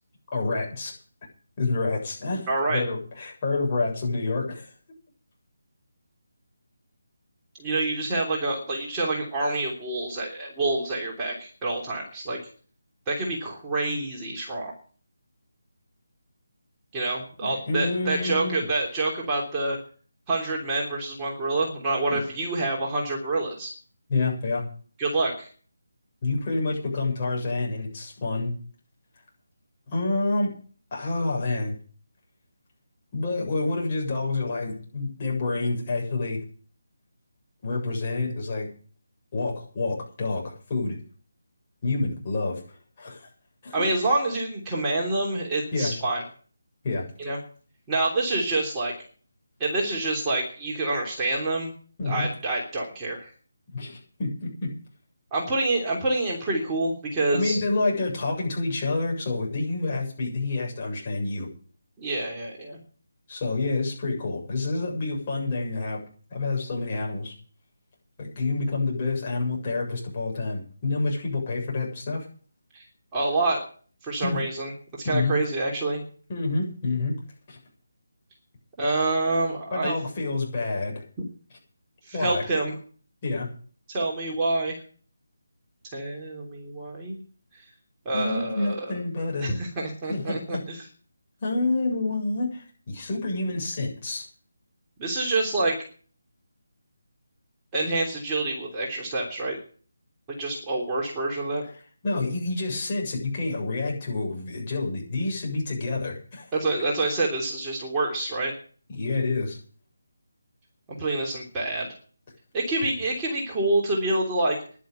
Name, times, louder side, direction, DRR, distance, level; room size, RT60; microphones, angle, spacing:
voice 1, 0.3-0.9 1.6-4.7 17.4-18.7 22.1-22.2 24.1-24.6 26.2-28.5 29.9-30.5 30.9-31.7 33.1-36.4 37.6-38.7 39.3-41.0 41.8-42.6 43.0-43.3 43.6-43.8 45.7-45.9 46.8-47.0 52.0-52.3 53.7-54.7 57.3-61.5 63.3-66.0 66.3-67.3 68.2-72.3 74.2-74.4 75.0-75.4 76.3-77.2 77.5-77.6 79.7-81.0 82.1-82.4 83.2-83.5 88.1-89.5 90.1-90.6 91.4-94.3 102.0-106.5 108.9-109.6, left 3 dB, 30° left, -2 dB, 7.5 m, -28 dB
voice 2, 2.5-2.8 7.6-12.4 13.1-14.7 16.9-19.8 20.3-23.7 25.0-25.5 43.7-46.2 47.2-47.4 47.9-48.9 49.6-51.7 52.0-53.3 55.3-57.6 62.0-62.8 72.7-72.8 73.1-73.6 74.0-74.7 75.0-76.0 78.8-79.9 82.0-82.8 83.9-84.8 85.9-87.2 87.5-87.6 88.0-89.0 89.4-90.8 95.0-95.8 97.7-99.6 100.4-101.6 106.5-108.5 110.9-111.9 112.5-114.6, right 2 dB, 15° right, -3 dB, 3.2 m, -27 dB
11.0 x 10.5 x 9.2 m, 0.43 s
figure-of-eight pair, 155°, 0 cm